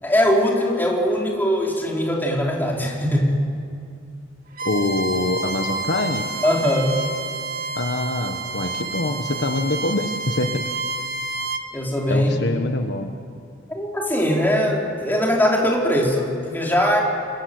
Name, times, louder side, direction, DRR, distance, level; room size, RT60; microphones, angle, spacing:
voice 1, 0.0-3.3 6.4-6.9 11.7-12.6 13.7-17.0, equal, 10° left, -2 dB, 4.2 m, -21 dB
Bowed string instrument, 4.5-11.6, right 2 dB, 50° right, 2.0 m, -29 dB
voice 2, 4.6-6.2 7.7-10.7 12.1-13.1, left 2 dB, 60° left, 5 dB, 1.4 m, -24 dB
28.0 x 24.5 x 7.9 m, 2.4 s
head